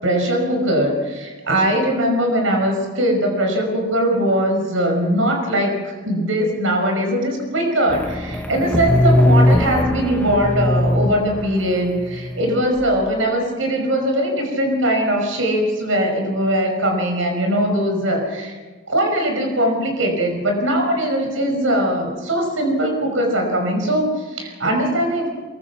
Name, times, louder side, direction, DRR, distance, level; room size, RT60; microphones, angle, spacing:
voice 1, 0.0-18.6 18.9-25.3, equal, 85° right, 2 dB, 5.5 m, -20 dB
sound 1, 7.9-12.8, left 1 dB, 10° left, 0.8 m, -20 dB
24.0 x 22.5 x 6.0 m, 1.4 s
head